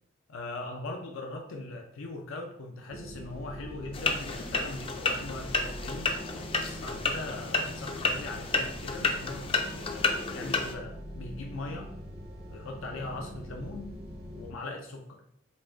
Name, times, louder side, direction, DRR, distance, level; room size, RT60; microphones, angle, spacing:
voice 1, 0.3-6.1 6.6-11.9 12.5-13.9 14.3-15.2, left 2 dB, 90° left, 2 dB, 0.6 m, -40 dB
sound 1, 2.9-14.5, equal, 50° right, 0.7 m, -43 dB
sound 2, 3.9-10.7, left 3 dB, 25° left, 0.4 m, -31 dB
5.4 x 2.5 x 3.7 m, 0.73 s
head